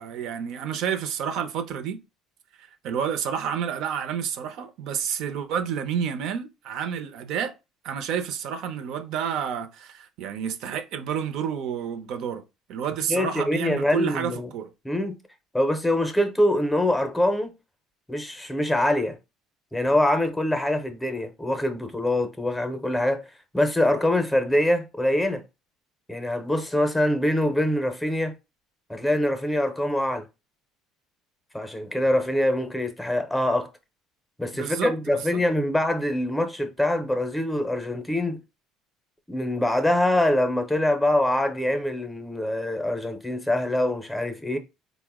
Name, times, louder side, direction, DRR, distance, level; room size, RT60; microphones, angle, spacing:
voice 1, 0.0-2.0 2.6-7.5 7.8-12.4 12.7-14.7 34.5-35.4, right 8 dB, 65° right, 0.5 m, -30 dB
voice 2, 13.1-14.5 14.8-15.2 15.5-17.5 18.1-19.2 19.7-23.2 23.5-25.4 26.1-28.3 28.9-30.2 31.5-33.7 34.4-38.4 39.3-44.6, left 1 dB, 5° left, 0.6 m, -24 dB
4.1 x 2.1 x 3.4 m
cardioid pair, 115°, 0 cm